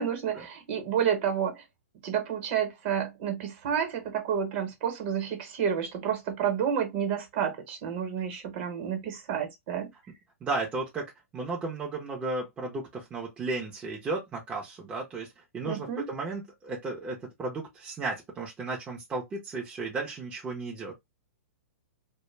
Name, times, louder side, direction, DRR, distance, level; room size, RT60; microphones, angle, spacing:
voice 1, 0.0-1.6 2.0-9.9 15.6-16.1, right 8 dB, 45° right, 1.0 m, -30 dB
voice 2, 10.4-11.0 11.3-20.9, right 3 dB, 15° right, 0.6 m, -34 dB
2.1 x 2.1 x 3.1 m
hypercardioid pair, 145°, 8 cm